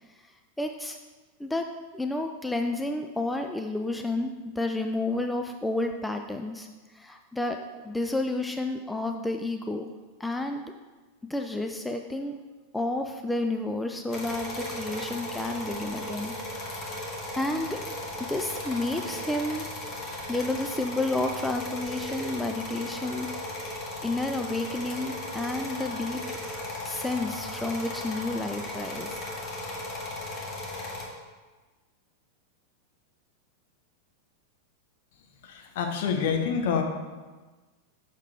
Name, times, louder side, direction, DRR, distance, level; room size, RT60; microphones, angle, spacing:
voice 1, 0.6-1.0 1.4-6.7 6.9-9.9 10.2-10.6 11.3-12.4 12.7-17.0 17.3-17.8 18.3-19.7 20.3-26.2 26.8-29.2, left 2 dB, 5° left, 4 dB, 0.4 m, -31 dB
sound 1, 14.1-31.1, left 1 dB, 30° left, 1.4 m, -36 dB
voice 2, 35.4-36.8, left 6 dB, 55° left, 4 dB, 0.9 m, -27 dB
6.4 x 6.4 x 3.5 m, 1.3 s
figure-of-eight pair, 90°, 0 cm